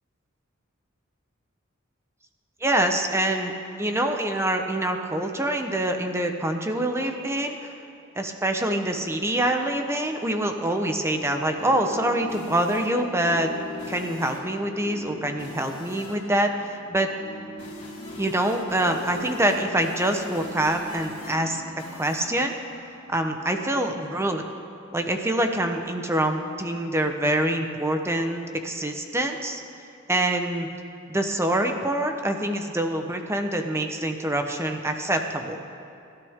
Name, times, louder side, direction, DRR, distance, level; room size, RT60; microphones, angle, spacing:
voice 1, 2.6-3.5 3.8-7.7 8.2-13.5 13.9-17.1 18.2-21.6 21.9-22.5 23.1-24.4 24.9-29.6 30.1-30.7 31.1-35.6, right 1 dB, 15° right, 5 dB, 1.0 m, -25 dB
sound 1, 11.3-23.5, left 3 dB, 40° left, 4.0 m, -40 dB
28.0 x 12.5 x 3.7 m, 2.7 s
head